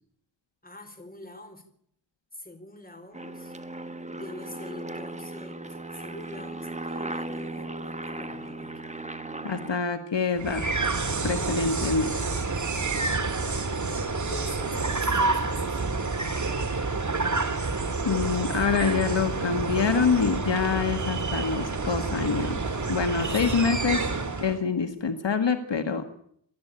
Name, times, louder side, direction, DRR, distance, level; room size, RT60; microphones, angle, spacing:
voice 1, 0.6-1.7 2.3-3.6 4.1-8.8 13.7-15.8 23.2-24.0, left 1 dB, 20° left, 8 dB, 4.3 m, -44 dB
Aircraft, 3.1-9.8, right 2 dB, 15° right, 1.5 m, -37 dB
voice 2, 9.4-10.6 11.2-12.1 18.0-24.0 24.4-26.0, left 5 dB, 65° left, 8 dB, 1.7 m, -26 dB
sound 1, 10.4-24.6, right 3 dB, 40° right, 2.1 m, -28 dB
27.5 x 12.5 x 8.8 m, 0.68 s
wide cardioid pair, 90°, 46 cm